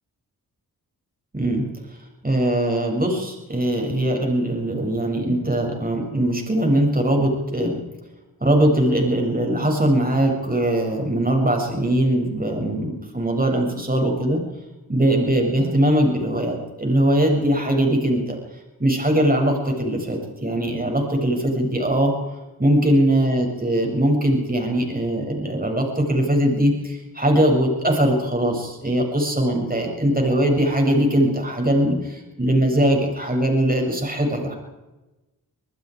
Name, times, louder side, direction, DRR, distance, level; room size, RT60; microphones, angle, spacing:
voice 1, 1.3-1.7 2.2-7.8 8.4-14.4 14.9-18.4 18.8-22.1 22.6-34.5, right 1 dB, 25° right, 2 dB, 7.4 m, -21 dB
26.5 x 20.0 x 5.0 m, 1.1 s
cardioid pair, 45°, 37 cm